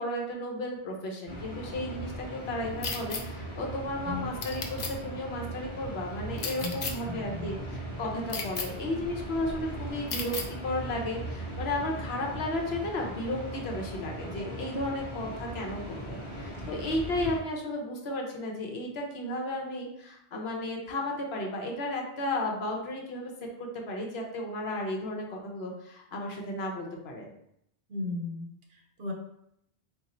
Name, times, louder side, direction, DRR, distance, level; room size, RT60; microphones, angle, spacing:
voice 1, 0.0-10.4 10.6-23.3 23.6-27.3, left 1 dB, 70° left, 1 dB, 1.0 m, -34 dB
sound 1, 1.3-17.4, right 1 dB, 30° left, 1.0 m, -39 dB
sound 2, 2.8-3.2 4.4-4.9 6.4-6.9 8.3-8.7 10.1-10.5, left 5 dB, 50° left, 0.6 m, -33 dB
voice 2, 6.6-7.6 16.6-16.7 27.9-29.1, left 2 dB, 65° right, 0 dB, 1.0 m, -37 dB
3.7 x 2.6 x 4.2 m, 0.76 s
omnidirectional pair, 1.1 m